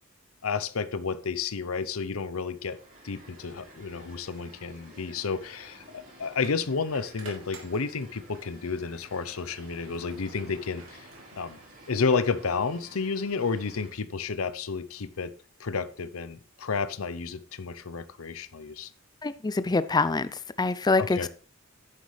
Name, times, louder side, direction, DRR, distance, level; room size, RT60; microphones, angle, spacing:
voice 1, 0.4-2.8 3.0-11.1 11.3-11.6 11.9-15.3 15.6-18.9 21.0-21.3, left 5 dB, 85° left, 14 dB, 0.7 m, -31 dB
sound 1, 2.5-13.9, right 1 dB, 40° right, 3.7 m, -52 dB
sound 2, 6.3-8.5 8.9-12.2, right 3 dB, 70° right, 3.0 m, -50 dB
voice 2, 19.2-21.3, left 3 dB, 20° left, 14 dB, 0.4 m, -25 dB
10.0 x 9.6 x 3.3 m, 0.41 s
head